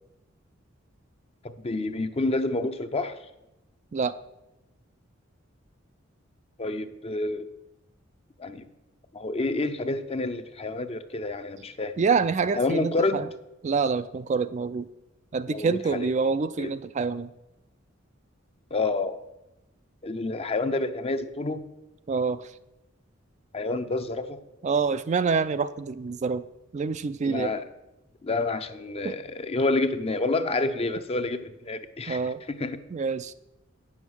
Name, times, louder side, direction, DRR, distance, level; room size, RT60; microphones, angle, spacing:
voice 1, 1.4-3.2 6.6-7.5 8.4-8.6 9.1-11.9 12.5-13.2 15.5-16.1 16.6-16.7 18.7-19.2 20.0-21.6 23.5-24.4 27.2-27.7 28.2-32.2 32.6-32.8, left 2 dB, 30° left, 10 dB, 0.6 m, -28 dB
voice 2, 12.0-13.3 13.6-14.9 15.3-17.3 22.1-22.5 24.6-26.4 26.7-27.5 29.0-29.1 32.1-32.4 32.9-33.3, right 5 dB, 35° right, 12 dB, 0.4 m, -26 dB
9.6 x 7.2 x 6.2 m, 0.93 s
head